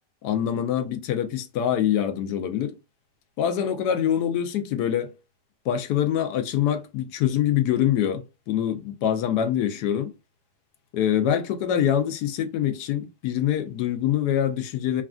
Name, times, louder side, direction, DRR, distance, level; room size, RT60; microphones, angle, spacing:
voice 1, 0.2-2.8 3.4-5.2 5.6-10.1 10.9-15.0, left 10 dB, 75° left, 1.1 m, -24 dB
3.2 x 2.4 x 2.3 m
omnidirectional pair, 1.8 m